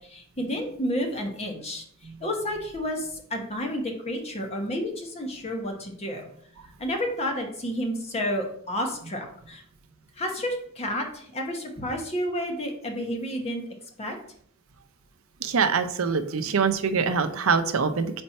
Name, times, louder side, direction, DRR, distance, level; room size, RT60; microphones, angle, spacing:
voice 1, 0.0-1.8 2.2-6.2 6.8-9.6 10.2-13.6 14.0-14.2, equal, 30° left, 2 dB, 1.0 m, -30 dB
voice 2, 15.4-18.2, right 5 dB, 75° right, 8 dB, 0.6 m, -24 dB
4.3 x 4.3 x 5.4 m, 0.65 s
head